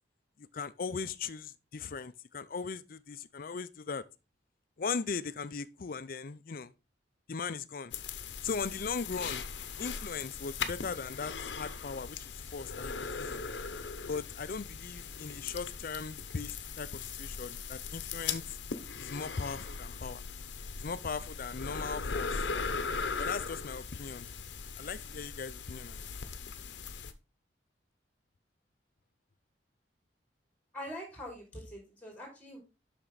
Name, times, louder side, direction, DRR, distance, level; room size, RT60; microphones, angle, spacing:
voice 1, 0.5-4.0 4.8-6.7 7.3-7.9 8.4-9.4 9.8-13.4 14.0-18.4 19.0-20.2 20.8-22.4 23.2-24.3 24.8-26.0, left 5 dB, 55° left, 0.5 m, -38 dB
sound 1, 7.9-27.1, left 5 dB, 85° left, 0.8 m, -39 dB
voice 2, 30.7-32.6, equal, 10° left, 3.6 m, -44 dB
7.7 x 5.9 x 4.0 m
head